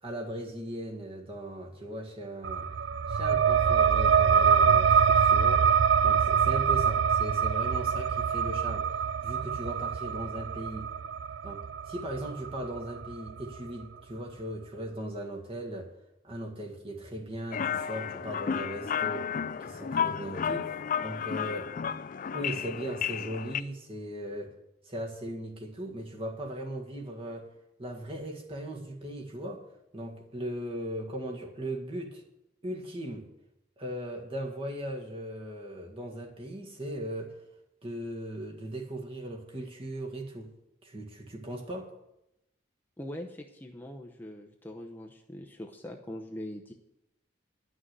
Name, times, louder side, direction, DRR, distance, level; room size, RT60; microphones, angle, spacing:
voice 1, 0.0-2.7 3.1-8.9 9.2-10.9 11.4-15.9 16.2-19.3 19.6-20.8 21.0-21.7 22.3-24.5 24.9-27.5 27.8-29.6 29.9-32.2 32.6-33.3 33.8-37.3 37.8-40.5 40.8-41.9, right 1 dB, 30° right, 1.8 m, -38 dB
sound 1, 2.4-13.6, right 7 dB, 60° right, 0.4 m, -25 dB
sound 2, 17.5-23.6, left 7 dB, 45° left, 0.4 m, -32 dB
voice 2, 43.0-46.7, left 1 dB, 10° left, 0.8 m, -42 dB
11.0 x 6.3 x 9.2 m
head